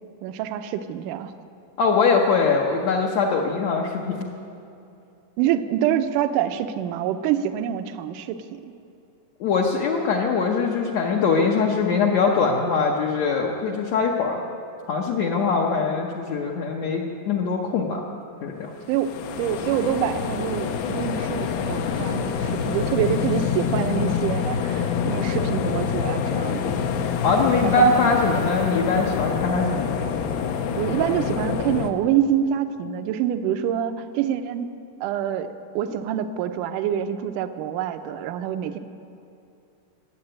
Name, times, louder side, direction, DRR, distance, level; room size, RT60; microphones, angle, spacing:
voice 1, 0.2-1.3 5.4-8.7 18.9-26.7 27.4-28.1 30.8-34.7 35.0-38.8, right 9 dB, 75° right, 9 dB, 2.0 m, -26 dB
voice 2, 1.8-4.3 9.4-14.4 14.9-18.1 18.4-18.7 27.2-30.0, left 4 dB, 65° left, -2 dB, 1.8 m, -22 dB
sound 1, 18.8-31.9, left 7 dB, 85° left, 2.8 m, -26 dB
19.5 x 8.2 x 8.9 m, 2.7 s
omnidirectional pair, 4.3 m